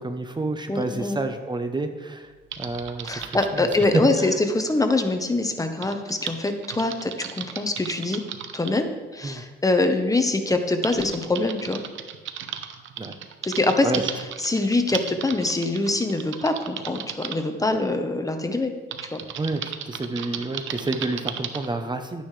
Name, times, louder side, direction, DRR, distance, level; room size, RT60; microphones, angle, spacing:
voice 1, 0.0-4.4 9.2-9.4 13.0-13.2 13.8-14.0 19.4-22.2, right 2 dB, 20° right, 7 dB, 0.8 m, -29 dB
voice 2, 0.7-1.2 3.0-8.2 8.5-8.9 9.1-11.8 13.4-13.9 14.4-18.7 19.0-19.2, left 2 dB, 15° left, 6 dB, 1.0 m, -24 dB
Typing, 2.5-3.9 5.8-8.8 9.8-9.9 10.4-17.4 18.9-21.7, right 9 dB, 75° right, 0.9 m, -35 dB
12.0 x 9.3 x 3.3 m, 1.3 s
cardioid pair, 90°, 20 cm